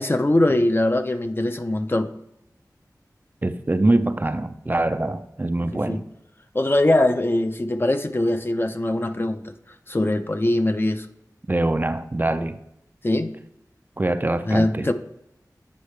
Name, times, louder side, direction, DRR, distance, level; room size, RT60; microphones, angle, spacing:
voice 1, 0.0-2.1 5.7-6.0 6.5-9.5 9.9-11.1 13.0-13.3 14.5-14.9, left 1 dB, 35° left, 8 dB, 0.5 m, -22 dB
voice 2, 3.4-6.0 11.5-12.6 14.0-14.9, right 2 dB, 30° right, 10 dB, 0.4 m, -23 dB
8.3 x 5.5 x 3.2 m, 0.82 s
wide cardioid pair, 60°, 7 cm